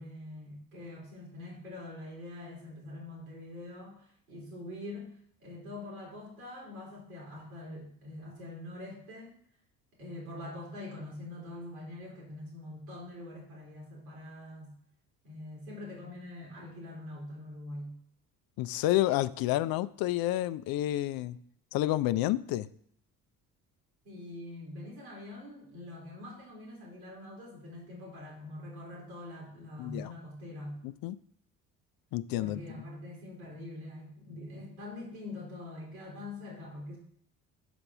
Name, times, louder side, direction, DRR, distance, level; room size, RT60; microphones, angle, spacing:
voice 1, 0.0-5.1 5.4-9.4 10.0-14.7 15.2-17.9 24.0-30.8 32.4-37.0, left 1 dB, 85° right, -2 dB, 2.9 m, -44 dB
voice 2, 18.6-21.4 21.7-22.7 29.8-30.1 30.8-31.2 32.1-32.6, left 15 dB, 60° left, 14 dB, 0.5 m, -29 dB
5.4 x 5.1 x 5.9 m, 0.67 s
hypercardioid pair, 60°, 41 cm